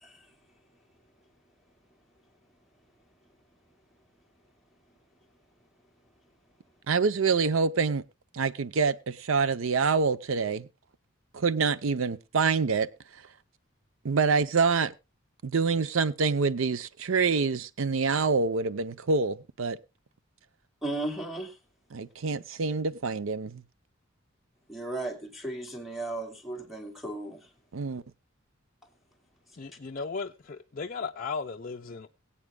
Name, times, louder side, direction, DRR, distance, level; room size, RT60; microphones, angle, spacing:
voice 1, 6.9-8.0 8.3-10.7 11.3-12.9 14.0-14.9 15.4-19.8 21.9-23.6 27.7-28.0, right 5 dB, 80° right, 0.6 m, -26 dB
voice 2, 20.8-21.5 24.7-27.4, right 2 dB, ahead, 2.5 m, -35 dB
voice 3, 29.6-32.1, left 4 dB, 45° left, 0.6 m, -36 dB
22.5 x 8.5 x 2.2 m
head